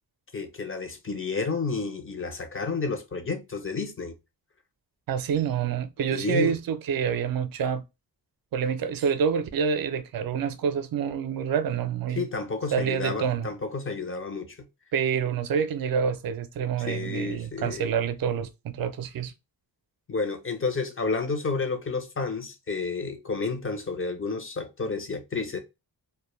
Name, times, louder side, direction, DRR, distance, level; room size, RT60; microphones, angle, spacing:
voice 1, 0.3-4.1 6.1-6.5 12.2-14.6 16.9-17.9 20.1-25.6, left 4 dB, 30° left, 0.6 m, -30 dB
voice 2, 5.1-7.8 8.5-12.3 12.7-13.5 14.9-19.3, right 7 dB, 55° right, 0.5 m, -27 dB
2.2 x 2.1 x 3.0 m
cardioid pair, 55°, 43 cm